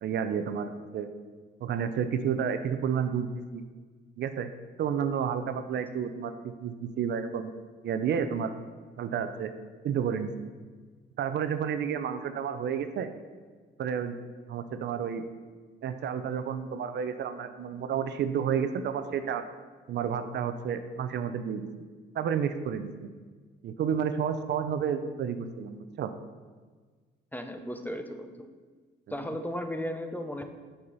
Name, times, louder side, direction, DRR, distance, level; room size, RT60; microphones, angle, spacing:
voice 1, 0.0-1.1 1.6-3.6 4.2-4.5 4.8-6.3 6.6-7.5 7.8-8.5 9.0-9.5 9.8-10.3 11.2-13.1 13.8-14.2 14.5-15.2 15.8-19.4 19.9-21.7 22.1-23.1 23.6-26.1, right 7 dB, 60° right, 9 dB, 0.5 m, -30 dB
voice 2, 27.3-28.5 29.1-30.4, equal, 10° left, 6 dB, 0.5 m, -35 dB
5.6 x 5.4 x 4.0 m, 1.5 s
cardioid pair, 90°, 20 cm